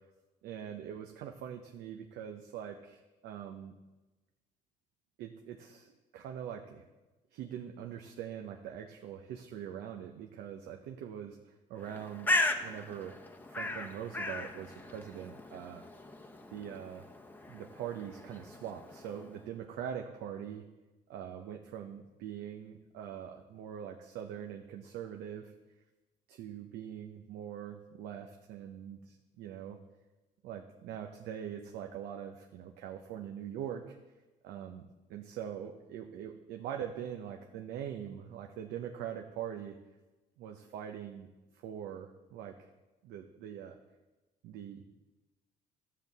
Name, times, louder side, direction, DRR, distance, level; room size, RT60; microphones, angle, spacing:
voice 1, 0.4-3.7 5.2-6.8 7.3-13.1 13.5-15.8 16.5-17.0 17.5-20.6 21.1-25.5 26.3-29.8 30.4-34.0 34.4-39.8 40.4-42.7 43.0-43.8 44.4-44.9, right 9 dB, 80° right, 4 dB, 0.7 m, -43 dB
Bird, 11.8-19.4, left 2 dB, 10° left, 0.8 m, -37 dB
12.5 x 7.4 x 4.1 m, 1.1 s
cardioid pair, 110°, 17 cm